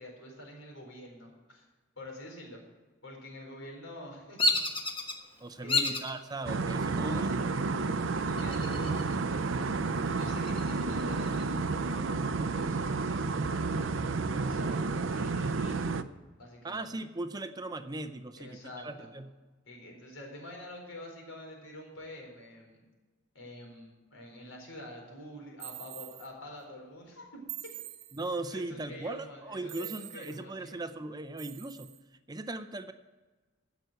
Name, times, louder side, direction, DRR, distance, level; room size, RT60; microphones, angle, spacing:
voice 1, 0.0-1.7 2.0-2.6 3.0-4.7 5.6-6.0 7.0-9.7 10.2-13.9 14.3-16.0 16.4-16.9 18.4-19.1 19.7-22.8 23.3-27.7 28.5-30.8, left 1 dB, 80° left, 1 dB, 4.1 m, -47 dB
Bird vocalization bird call bird song, 4.4-5.2 5.7-6.1 6.7-7.2 8.4-9.1 9.5-9.6 10.1-11.5, left 2 dB, 25° left, 1.3 m, -30 dB
voice 2, 5.4-7.3 7.8-8.0 16.6-19.3 28.1-31.9 32.3-32.9, right 2 dB, 20° right, 10 dB, 0.5 m, -38 dB
sound 1, 6.5-16.0, right 4 dB, 70° right, 0.5 m, -31 dB
sound 2, 25.6-26.3 27.5-28.4 29.7-30.4 31.4-32.0, right 14 dB, 50° right, 1.2 m, -44 dB
15.5 x 6.1 x 7.9 m, 1.3 s
head